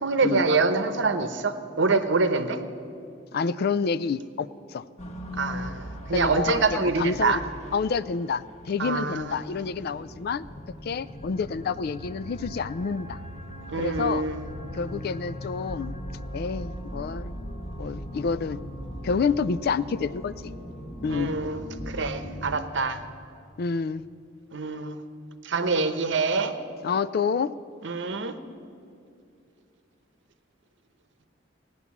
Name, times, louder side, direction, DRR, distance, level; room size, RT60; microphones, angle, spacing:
voice 1, 0.0-2.6 5.4-7.4 8.8-9.4 13.7-14.4 21.1-23.0 24.5-25.0 25.4-26.6 27.8-28.4, right 3 dB, 65° right, 10 dB, 0.9 m, -25 dB
voice 2, 3.3-4.8 6.1-7.4 7.7-10.4 10.8-13.2 13.7-14.2 14.7-16.0 16.3-17.3 17.8-18.6 19.0-20.5 21.0-21.3 23.6-24.0 26.8-27.5, left 5 dB, 55° left, 16 dB, 0.4 m, -28 dB
sound 1, 5.0-22.6, equal, 35° left, 1.3 m, -39 dB
16.5 x 9.6 x 7.1 m, 2.4 s
head